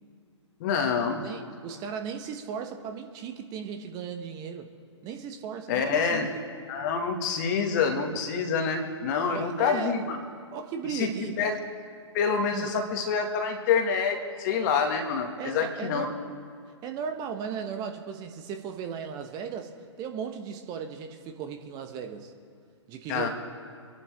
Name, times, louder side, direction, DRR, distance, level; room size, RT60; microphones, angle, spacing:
voice 1, 0.6-1.2 5.7-6.3 6.7-10.2 10.9-11.5 12.1-16.1 23.1-23.3, left 6 dB, 35° left, 4 dB, 1.9 m, -27 dB
voice 2, 1.2-4.7 5.0-6.2 9.2-10.1 10.5-11.4 12.5-12.7 15.4-16.3 16.8-22.3 22.9-23.3, right 7 dB, 25° right, 6 dB, 1.1 m, -36 dB
25.5 x 11.0 x 3.5 m, 2.3 s
figure-of-eight pair, 120°, 16 cm